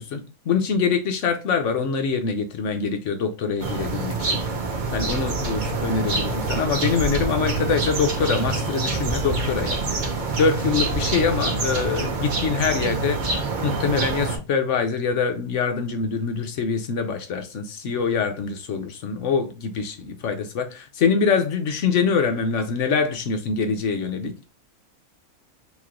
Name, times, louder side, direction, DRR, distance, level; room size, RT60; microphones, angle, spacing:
voice 1, 0.0-4.4 4.9-9.8 10.3-13.2 13.6-24.3, left 5 dB, 65° left, 0.9 m, -24 dB
sound 1, 3.6-14.4, right 3 dB, 45° right, 0.7 m, -26 dB
3.0 x 2.9 x 3.6 m
omnidirectional pair, 1.5 m